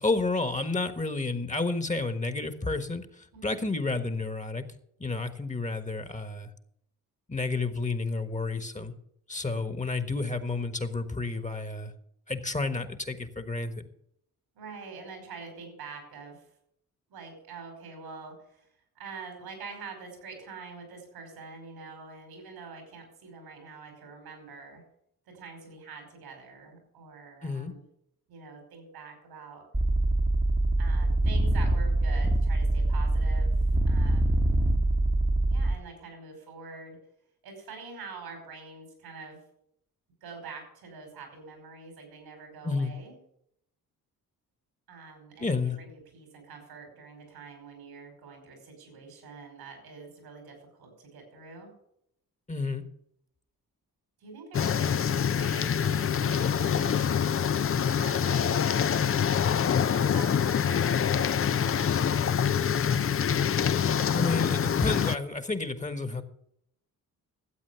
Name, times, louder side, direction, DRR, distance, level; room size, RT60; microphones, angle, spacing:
voice 1, 0.0-4.6 5.0-6.5 7.3-8.9 9.3-11.9 12.3-13.9 27.4-27.7 42.6-42.9 45.4-45.8 52.5-52.9 64.1-66.2, left 3 dB, 20° left, 9 dB, 1.5 m, -30 dB
voice 2, 14.6-16.4 17.1-18.7 19.0-24.8 25.3-27.8 28.3-29.6 30.8-34.4 35.5-37.0 37.4-39.4 40.2-43.2 44.9-51.7 54.2-57.3 57.9-59.1 59.9-63.3, right 4 dB, 90° right, 3 dB, 5.2 m, -45 dB
sound 1, 29.7-35.7, right 1 dB, 10° right, 1.1 m, -24 dB
sound 2, 54.5-65.2, left 8 dB, 35° left, 0.6 m, -25 dB
13.0 x 8.2 x 7.0 m, 0.73 s
supercardioid pair, 60°, 37 cm